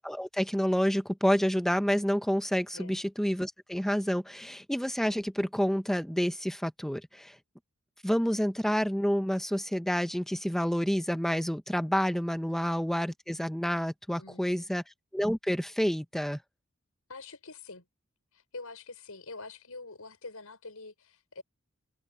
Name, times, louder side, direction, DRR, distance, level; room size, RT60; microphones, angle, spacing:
voice 1, 0.0-7.4 8.0-14.8 15.1-16.4, equal, ahead, 0.7 m, -29 dB
voice 2, 14.2-14.7 17.1-17.9 18.3-21.4, left 3 dB, 85° left, 5.6 m, -45 dB
head